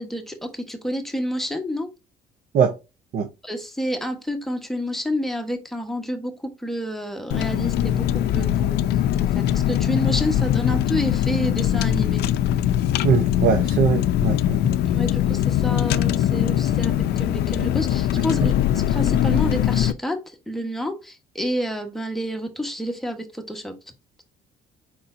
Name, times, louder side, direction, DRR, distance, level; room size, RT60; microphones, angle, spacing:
voice 1, 0.0-1.9 3.4-8.7 9.3-12.3 14.9-18.5 18.9-23.8, equal, ahead, 1.1 m, -29 dB
Car, 7.3-19.9, left 11 dB, 75° left, 0.5 m, -21 dB
voice 2, 13.0-14.8 18.4-18.5, right 7 dB, 60° right, 0.8 m, -22 dB
4.7 x 4.2 x 2.5 m
cardioid pair, 110°, 17 cm